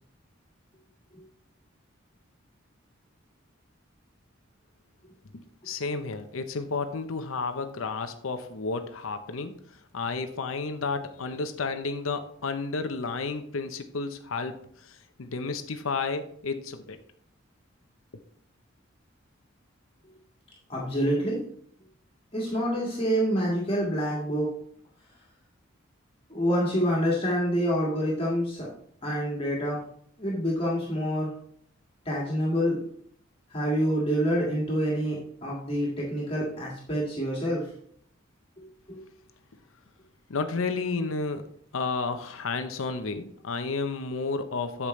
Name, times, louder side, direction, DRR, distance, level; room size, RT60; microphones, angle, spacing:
voice 1, 5.3-17.0 40.3-44.9, left 4 dB, 80° left, 8 dB, 0.7 m, -32 dB
voice 2, 20.7-21.4 22.3-24.5 26.3-28.7 29.0-29.8 30.2-31.3 32.1-32.8 33.5-37.7 38.9-39.0, equal, 30° left, -4 dB, 1.9 m, -27 dB
8.3 x 7.3 x 3.2 m, 0.63 s
head